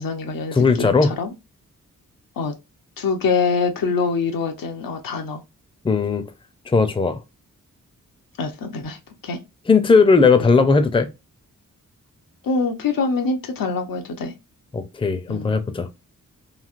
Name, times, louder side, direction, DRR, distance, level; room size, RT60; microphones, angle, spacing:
voice 1, 0.0-1.3 2.4-2.5 3.0-5.4 8.4-9.4 10.3-10.7 12.4-14.3 15.3-15.5, left 4 dB, 90° left, 0.8 m, -25 dB
voice 2, 0.5-1.1 5.8-6.2 6.7-7.2 9.7-11.1 14.7-15.9, left 4 dB, 15° left, 0.5 m, -17 dB
3.1 x 2.7 x 2.4 m
wide cardioid pair, 95°, 33 cm